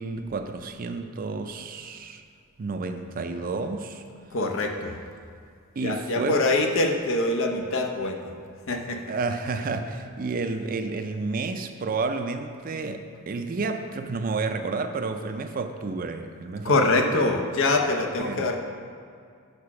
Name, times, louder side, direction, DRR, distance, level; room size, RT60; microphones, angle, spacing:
voice 1, 0.0-2.2 2.6-4.0 5.8-6.4 9.1-17.3 18.2-18.5, right 3 dB, 40° right, 7 dB, 0.4 m, -31 dB
voice 2, 4.3-5.0 5.8-8.3 8.7-9.0 16.6-18.6, left 2 dB, 60° left, 3 dB, 0.7 m, -24 dB
6.6 x 4.8 x 5.9 m, 2.3 s
head